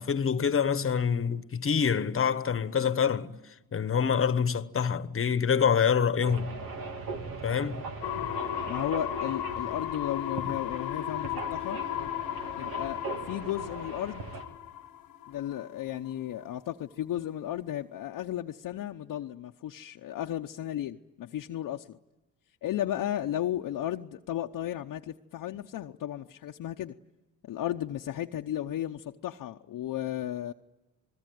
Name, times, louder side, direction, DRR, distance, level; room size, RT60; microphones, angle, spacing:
voice 1, 0.0-3.4 3.7-6.6 7.4-7.9, left 7 dB, 40° left, 1.2 m, -26 dB
sound 1, 6.2-14.4, right 4 dB, 80° right, 2.9 m, -40 dB
sound 2, 8.0-15.7 16.1-16.2, left 12 dB, 85° left, 1.2 m, -35 dB
voice 2, 8.7-11.8 12.5-13.0 13.3-14.3 15.3-22.0 22.6-26.9 27.5-30.5, left 12 dB, 70° left, 0.8 m, -34 dB
28.0 x 21.0 x 9.2 m
cardioid pair, 75°, 34 cm